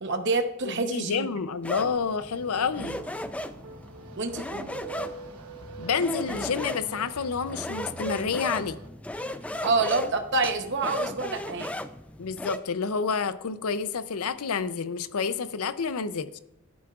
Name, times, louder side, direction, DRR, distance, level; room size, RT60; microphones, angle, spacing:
voice 1, 0.0-1.3 4.2-4.5 9.6-11.7, right 3 dB, 50° right, 6 dB, 0.9 m, -27 dB
voice 2, 0.6-3.0 5.8-8.8 12.2-16.4, left 5 dB, 80° left, 13 dB, 0.6 m, -29 dB
sound 1, 1.6-12.6, left 1 dB, 5° left, 0.3 m, -36 dB
sound 2, 1.9-8.9, right 3 dB, 80° right, 1.0 m, -43 dB
12.5 x 11.0 x 2.4 m, 0.83 s
head